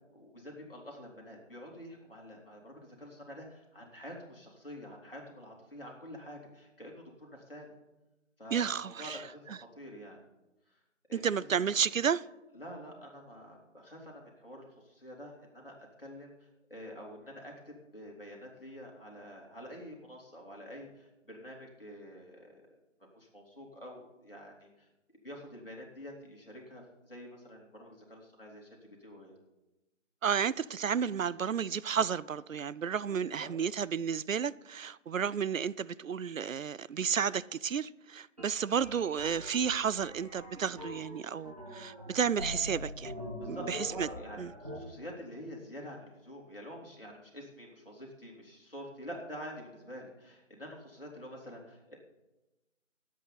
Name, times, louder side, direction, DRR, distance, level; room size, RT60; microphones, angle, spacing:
voice 1, 0.1-7.7 8.4-10.2 10.7-10.8 11.1-11.7 12.5-16.3 16.7-22.7 23.1-24.9 25.2-29.4 33.1-33.5 35.0-35.2 43.3-52.0, equal, 45° left, 3.1 m, -47 dB
voice 2, 8.5-9.2 11.1-12.2 30.2-43.1 43.5-44.1 44.4-44.5, right 7 dB, 85° right, 0.5 m, -32 dB
sound 1, 38.4-44.8, left 1 dB, 30° right, 1.6 m, -43 dB
18.5 x 8.4 x 4.0 m
figure-of-eight pair, 175°, 39 cm